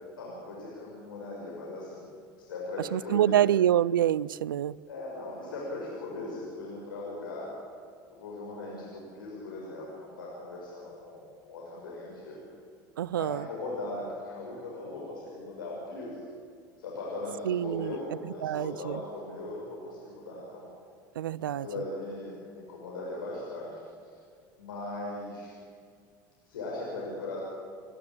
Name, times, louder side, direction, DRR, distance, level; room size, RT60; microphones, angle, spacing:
voice 1, 0.2-2.1 2.4-3.5 4.9-7.6 8.1-12.4 13.1-16.2 16.8-20.7 21.4-24.2 24.6-25.5 26.5-27.4, left 2 dB, 90° left, 5.9 m, -39 dB
voice 2, 2.9-4.8 13.0-13.5 17.4-18.0 18.2-19.0 21.2-21.7, right 11 dB, 90° right, 0.4 m, -26 dB
30.0 x 12.0 x 8.6 m
hypercardioid pair, 80°, 11 cm